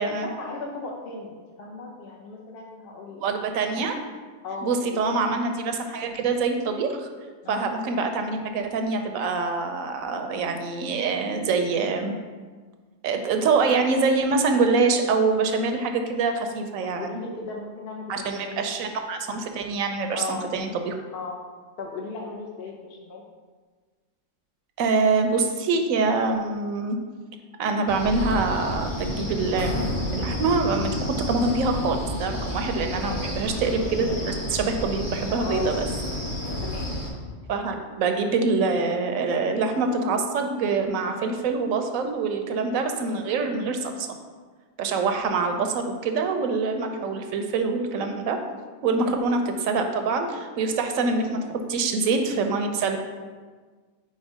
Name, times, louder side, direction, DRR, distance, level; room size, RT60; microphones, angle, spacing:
voice 1, 0.0-3.3 4.4-5.4 7.4-7.7 16.8-18.6 20.1-20.5 21.1-21.4 21.8-23.2 31.1-31.3 32.9-33.3 35.4-35.8 36.6-36.9 40.9-41.2 49.0-49.2, left 4 dB, 55° left, 0 dB, 0.8 m, -36 dB
voice 2, 3.2-3.9 4.6-7.1 7.5-12.1 13.0-17.2 18.1-20.9 24.8-27.0 27.6-29.7 30.1-35.9 37.5-44.2 44.8-48.4 48.8-53.0, right 4 dB, 80° right, 5 dB, 1.0 m, -25 dB
Wind, 27.9-37.1, left 1 dB, 20° left, 0.7 m, -30 dB
4.5 x 4.4 x 4.8 m, 1.4 s
omnidirectional pair, 1.4 m